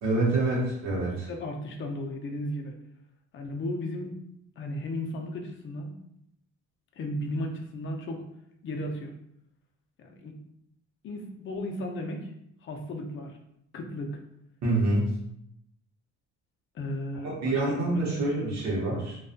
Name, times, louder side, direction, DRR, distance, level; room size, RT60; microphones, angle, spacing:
voice 1, 0.0-1.3 14.6-15.1 17.2-19.2, right 2 dB, 65° right, -4 dB, 0.8 m, -26 dB
voice 2, 1.3-2.7 3.3-4.1 4.6-5.9 7.0-8.2 8.6-9.1 10.0-10.3 11.0-12.3 12.6-13.4 13.7-14.2 16.7-18.6, left 1 dB, 40° left, 2 dB, 0.5 m, -35 dB
2.5 x 2.3 x 2.4 m, 0.77 s
cardioid pair, 115°, 30 cm